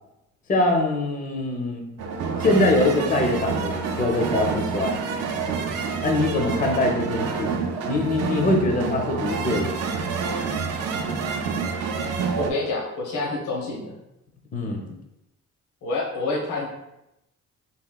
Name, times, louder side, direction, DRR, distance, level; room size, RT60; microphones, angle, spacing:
voice 1, 0.5-1.9 2.4-5.1 6.0-10.0 14.5-14.9, left 2 dB, 30° left, 2 dB, 0.4 m, -23 dB
sound 1, 2.0-12.5, right 5 dB, 55° right, 0.4 m, -28 dB
voice 2, 12.4-14.0 15.8-16.7, left 2 dB, 85° left, -3 dB, 0.8 m, -27 dB
2.9 x 2.8 x 2.2 m, 0.89 s
cardioid pair, 90°, 30 cm